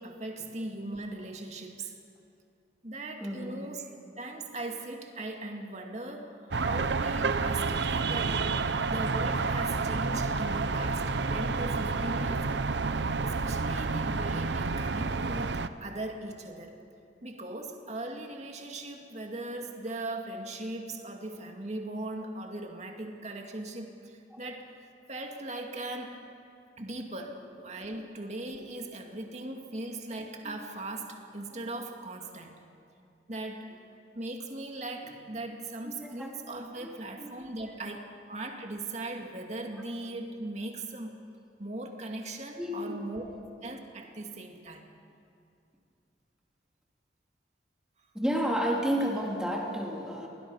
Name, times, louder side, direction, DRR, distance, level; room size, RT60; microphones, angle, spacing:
voice 1, 0.0-1.9 2.8-3.9 4.2-12.5 13.2-15.5 15.8-16.7 17.2-24.8 25.1-26.2 26.8-32.6 33.3-33.7 34.1-41.1 41.6-43.2 43.6-44.9, right 2 dB, 40° right, 3 dB, 2.2 m, -39 dB
voice 2, 3.2-3.5 10.3-10.6 30.4-30.5 35.8-36.3 36.8-37.3 42.6-43.3 48.1-50.3, equal, 5° right, -1 dB, 2.8 m, -32 dB
sound 1, 6.5-15.7, right 4 dB, 80° right, 0.8 m, -29 dB
sound 2, 8.6-15.1, equal, 80° left, 5.8 m, -52 dB
28.5 x 20.0 x 5.6 m, 2.5 s
head